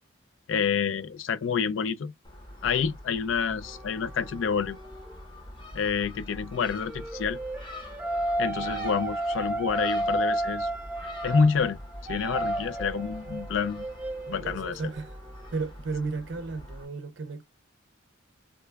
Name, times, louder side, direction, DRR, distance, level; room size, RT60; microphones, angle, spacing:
voice 1, 0.5-2.1 2.6-4.8 5.7-7.4 8.4-10.7 11.2-11.8 12.1-13.9 14.3-14.8, left 6 dB, 70° left, 0.4 m, -28 dB
Gull seagull, 2.2-16.8, left 1 dB, 25° left, 0.9 m, -44 dB
sound 1, 3.6-5.2 6.4-15.5, right 1 dB, 10° right, 0.4 m, -33 dB
voice 2, 14.3-15.2 15.5-17.4, right 4 dB, 65° right, 0.5 m, -34 dB
3.0 x 2.2 x 3.2 m
head